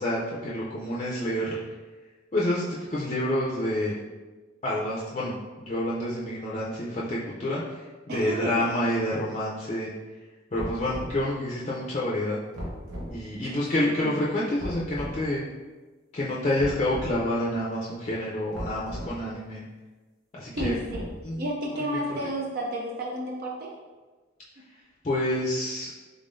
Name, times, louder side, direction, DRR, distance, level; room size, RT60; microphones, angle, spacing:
voice 1, 0.0-1.5 2.3-3.9 4.6-9.9 10.5-12.4 13.1-15.4 16.1-19.6 20.3-20.7 21.2-21.5 21.7-22.0 25.0-25.9, left 1 dB, 35° left, -6 dB, 0.5 m, -28 dB
voice 2, 8.1-8.5 13.4-13.5 14.0-14.2 20.6-20.8 21.4-23.8, right 1 dB, 50° right, -1 dB, 0.5 m, -31 dB
sound 1, 10.5-11.2 12.5-13.1 14.6-15.2 16.6-17.1 18.5-19.1 20.5-21.3, equal, 70° right, 0.9 m, -36 dB
3.7 x 3.4 x 2.5 m, 1.3 s
head